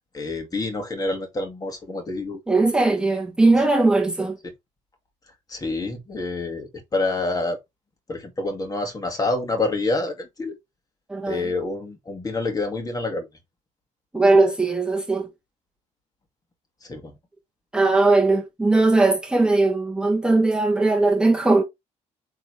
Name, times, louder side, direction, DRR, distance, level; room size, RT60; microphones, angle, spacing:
voice 1, 0.1-2.4 4.4-4.5 5.5-7.6 8.1-10.6 11.3-13.3 16.8-17.2, left 2 dB, 25° left, 2.2 m, -27 dB
voice 2, 2.5-4.4 11.1-11.4 14.1-15.3 17.7-21.6, right 2 dB, 5° right, 1.5 m, -19 dB
9.0 x 3.9 x 3.3 m
cardioid pair, 120°, 14 cm